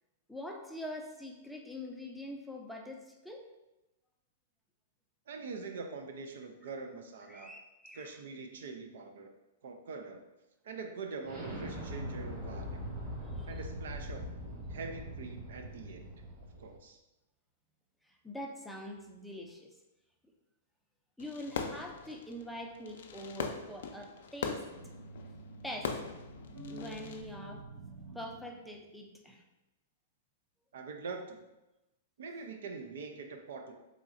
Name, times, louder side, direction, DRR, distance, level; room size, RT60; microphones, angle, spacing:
voice 1, 0.3-3.4 7.3-8.2 13.2-13.5 18.2-19.7 21.2-24.6 25.6-26.0 26.7-27.6 28.1-29.4, left 1 dB, ahead, 0 dB, 0.5 m, -44 dB
voice 2, 5.3-7.5 7.9-9.3 9.6-10.2 10.6-12.8 13.5-14.3 14.7-16.1 16.6-17.0 30.7-31.4 32.2-33.7, right 4 dB, 75° right, 4 dB, 0.4 m, -44 dB
Explosion, 11.2-16.8, equal, 30° right, 1.3 m, -41 dB
Fireworks, 21.2-27.2, left 5 dB, 70° left, 0.4 m, -41 dB
sound 1, 24.7-28.9, right 2 dB, 55° right, 1.4 m, -49 dB
3.6 x 3.1 x 2.5 m, 0.98 s
hypercardioid pair, 125°, 0 cm